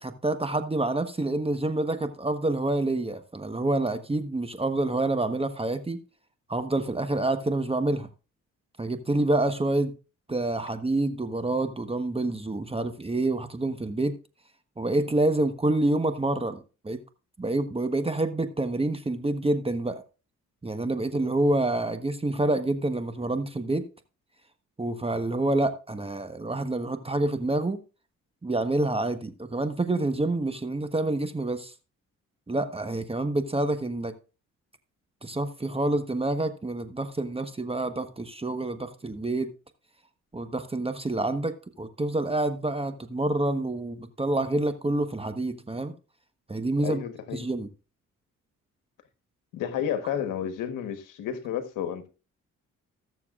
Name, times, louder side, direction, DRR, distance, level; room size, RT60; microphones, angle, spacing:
voice 1, 0.0-6.0 6.5-8.1 8.8-9.9 10.3-14.2 14.8-16.6 16.8-17.0 17.4-20.0 20.6-23.8 24.8-27.8 28.4-31.7 32.5-34.1 35.2-39.5 40.3-45.9 46.5-47.0 47.3-47.7, right 2 dB, 20° right, 1.2 m, -27 dB
voice 2, 46.8-47.5 49.5-52.1, left 9 dB, 90° left, 1.3 m, -31 dB
20.0 x 7.0 x 2.4 m
cardioid pair, 70°, 31 cm